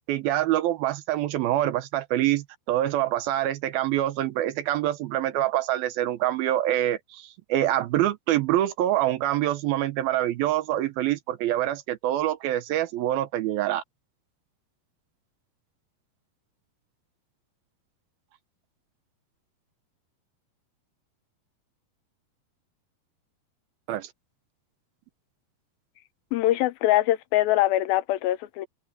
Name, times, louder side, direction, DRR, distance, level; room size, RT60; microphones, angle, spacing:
voice 1, 0.1-13.8 23.9-24.1, right 13 dB, 80° right, 2.7 m, -25 dB
voice 2, 26.3-28.7, left 15 dB, 85° left, 2.6 m, -23 dB
omnidirectional pair, 4.3 m